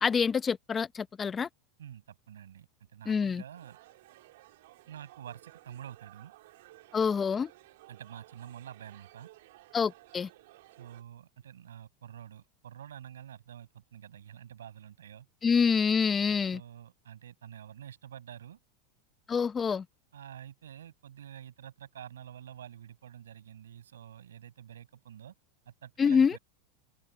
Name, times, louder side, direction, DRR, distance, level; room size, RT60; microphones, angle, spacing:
voice 1, 0.0-1.5 3.1-3.4 6.9-7.5 9.7-10.3 15.4-16.6 19.3-19.8 26.0-26.4, left 6 dB, 25° left, 0.9 m, -26 dB
voice 2, 1.8-3.8 4.9-6.3 7.9-9.3 10.8-15.3 16.3-18.6 20.1-25.3 25.7-26.4, right 10 dB, 90° right, 6.4 m, -48 dB
sound 1, 3.5-11.0, right 18 dB, 70° right, 3.1 m, -56 dB
hypercardioid pair, 105°, 0 cm